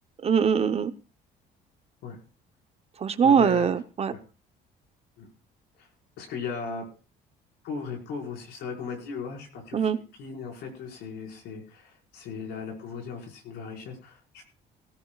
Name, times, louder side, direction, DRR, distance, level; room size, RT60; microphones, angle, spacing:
voice 1, 0.2-0.9 3.0-4.1 9.7-10.0, right 7 dB, 35° right, 11 dB, 0.9 m, -22 dB
voice 2, 3.2-3.7 4.1-4.2 5.2-5.3 5.8-5.9 6.2-6.8 7.6-9.9 10.2-14.4, left 5 dB, 80° left, 1 dB, 5.1 m, -37 dB
17.0 x 15.5 x 2.4 m, 0.34 s
cardioid pair, 110°, 17 cm